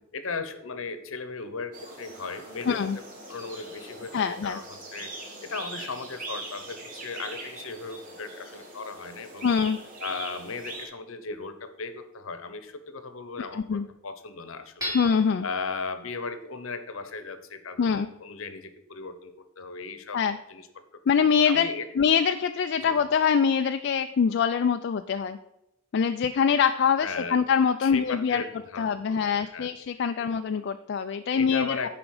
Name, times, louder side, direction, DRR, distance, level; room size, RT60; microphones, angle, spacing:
voice 1, 0.1-5.1 5.4-9.5 10.0-15.0 15.4-20.2 20.5-20.7 21.5-21.9 22.8-22.9 27.0-27.4 27.8-29.7 30.2-30.3 31.3-31.9, left 4 dB, 70° left, 10 dB, 0.9 m, -37 dB
sound 1, 1.7-10.9, right 2 dB, 40° right, 1.8 m, -41 dB
voice 2, 2.7-3.0 4.1-4.6 9.4-9.8 13.4-13.9 14.9-15.5 17.8-18.1 20.1-20.4 21.1-21.7 22.0-25.4 25.9-28.4 28.8-31.9, left 6 dB, 55° left, 7 dB, 0.4 m, -24 dB
Hammer / Chink clink, 14.8-15.6, left 1 dB, 20° right, 3.2 m, -34 dB
10.5 x 5.1 x 4.8 m, 0.87 s
head